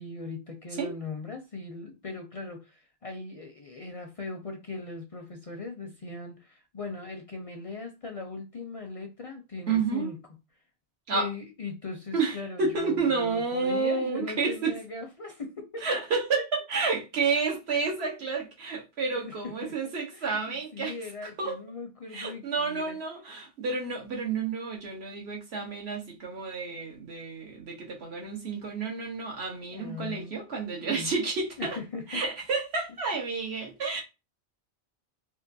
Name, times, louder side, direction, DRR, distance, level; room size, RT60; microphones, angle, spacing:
voice 1, 0.0-10.2 11.1-15.9 16.3-16.4 19.1-19.7 20.1-23.0 29.7-30.4 30.9-31.1 31.6-32.2, left 3 dB, 45° left, 0.5 m, -39 dB
voice 2, 9.7-10.1 11.1-11.3 12.1-14.7 15.8-20.9 21.4-21.6 22.1-31.8 32.1-34.0, right 4 dB, 80° right, 1.3 m, -30 dB
3.6 x 2.5 x 2.6 m
omnidirectional pair, 1.1 m